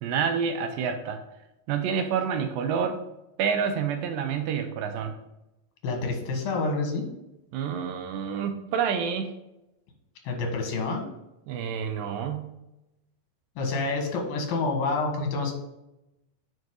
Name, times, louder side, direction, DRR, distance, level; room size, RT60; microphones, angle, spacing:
voice 1, 0.0-1.2 1.7-3.0 3.4-5.1 7.5-9.3 11.5-12.5, right 7 dB, 80° right, 7 dB, 2.4 m, -28 dB
voice 2, 5.8-7.1 10.3-11.0 13.6-15.5, left 3 dB, 85° left, 2 dB, 3.4 m, -28 dB
9.2 x 5.0 x 3.8 m, 0.92 s
omnidirectional pair, 4.1 m